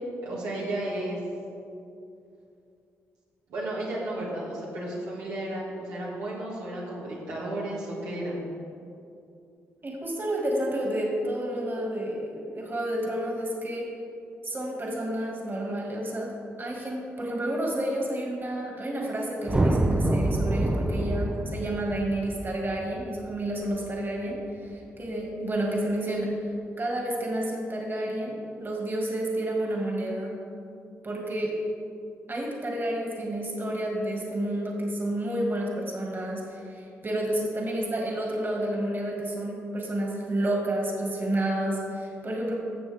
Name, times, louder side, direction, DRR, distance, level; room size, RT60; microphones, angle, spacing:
voice 1, 0.2-1.2 3.5-8.5, right 1 dB, 90° right, -6 dB, 2.2 m, -33 dB
voice 2, 9.8-13.9 14.4-16.3 16.6-26.3 26.8-30.3 31.0-31.6 32.3-42.6, right 1 dB, 35° right, -1 dB, 2.2 m, -30 dB
sound 1, 19.5-23.9, right 1 dB, 20° right, 0.6 m, -26 dB
13.5 x 7.1 x 3.6 m, 2.6 s
supercardioid pair, 60°, 6 cm